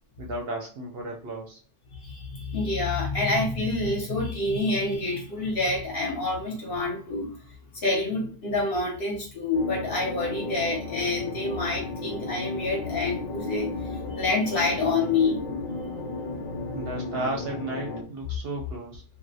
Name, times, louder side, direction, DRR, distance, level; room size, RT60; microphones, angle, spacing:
voice 1, 0.2-1.6 16.7-19.0, right 2 dB, 60° right, 0 dB, 0.7 m, -34 dB
voice 2, 1.9-15.5 16.3-16.5, left 3 dB, 55° left, -1 dB, 0.8 m, -28 dB
sound 1, 9.5-18.0, left 3 dB, 90° left, 1.0 m, -34 dB
2.4 x 2.0 x 2.7 m, 0.38 s
omnidirectional pair, 1.3 m